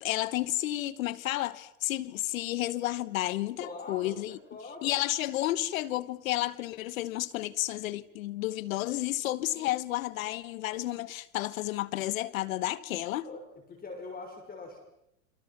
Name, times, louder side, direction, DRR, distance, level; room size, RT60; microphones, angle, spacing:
voice 1, 0.0-4.4 4.8-13.3, left 15 dB, 75° left, 1.4 m, -31 dB
voice 2, 3.6-4.9 9.5-9.8 10.3-10.4 13.2-13.4 13.7-14.8, left 3 dB, 20° left, 5.9 m, -43 dB
29.5 x 25.5 x 6.0 m
supercardioid pair, 115°, 40 cm